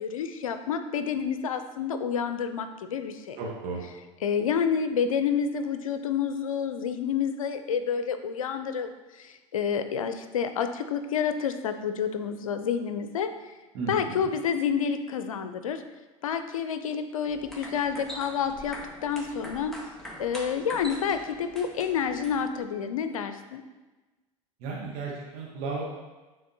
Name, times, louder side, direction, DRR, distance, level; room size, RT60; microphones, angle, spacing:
voice 1, 0.0-3.4 4.2-8.9 9.2-13.5 13.9-15.8 16.2-19.8 20.2-23.6, left 7 dB, 85° left, 9 dB, 0.5 m, -29 dB
voice 2, 3.4-3.8 13.7-14.3 24.6-25.8, right 4 dB, 60° right, -3 dB, 1.2 m, -34 dB
sound 1, 17.2-22.6, equal, ahead, 1.4 m, -43 dB
9.3 x 3.8 x 2.7 m, 1.2 s
hypercardioid pair, 80°, 17 cm